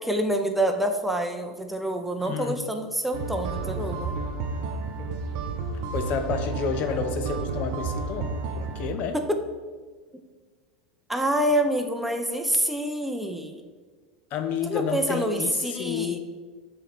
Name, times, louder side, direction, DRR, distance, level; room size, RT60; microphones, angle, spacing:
voice 1, 0.0-4.1 9.1-9.4 11.1-13.6 14.7-16.2, right 1 dB, 5° right, 5 dB, 0.6 m, -27 dB
voice 2, 2.2-2.6 5.9-9.2 14.3-16.2, left 6 dB, 50° left, 8 dB, 0.5 m, -30 dB
sound 1, 3.1-8.9, right 4 dB, 55° right, 0.7 m, -31 dB
7.4 x 3.2 x 4.1 m, 1.4 s
hypercardioid pair, 85°, 4 cm